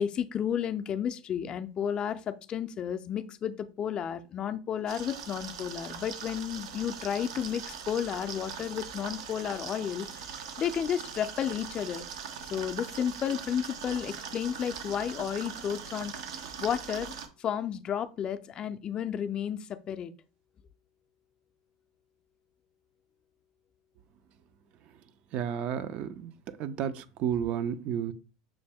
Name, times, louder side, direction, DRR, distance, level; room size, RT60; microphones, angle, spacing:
voice 1, 0.0-10.2 10.6-12.0 12.5-16.1 16.6-20.1, left 9 dB, 35° left, 0.4 m, -32 dB
sound 1, 4.9-17.3, right 7 dB, 80° right, 0.7 m, -41 dB
voice 2, 25.3-26.3 26.6-28.1, right 9 dB, 50° right, 0.4 m, -31 dB
6.2 x 2.1 x 3.4 m
supercardioid pair, 110°, 3 cm